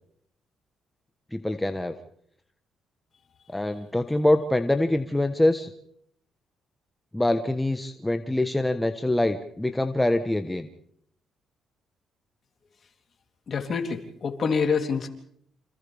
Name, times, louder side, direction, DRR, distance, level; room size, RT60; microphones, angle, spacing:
voice 1, 1.3-1.9 3.5-5.7 7.1-10.7, left 1 dB, 10° left, 7 dB, 1.2 m, -24 dB
voice 2, 13.5-15.1, left 5 dB, 50° left, 4 dB, 3.3 m, -26 dB
29.0 x 27.5 x 3.5 m, 0.66 s
cardioid pair, 90°, 0 cm